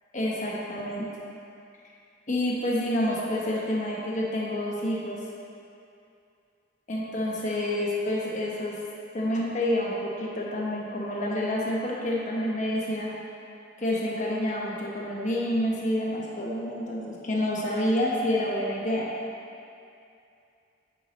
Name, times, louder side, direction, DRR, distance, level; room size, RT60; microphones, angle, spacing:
voice 1, 0.1-1.0 2.3-5.2 6.9-8.7 9.1-13.1 13.8-19.1, left 1 dB, 40° left, -4 dB, 1.2 m, -28 dB
8.3 x 6.9 x 3.3 m, 2.6 s
head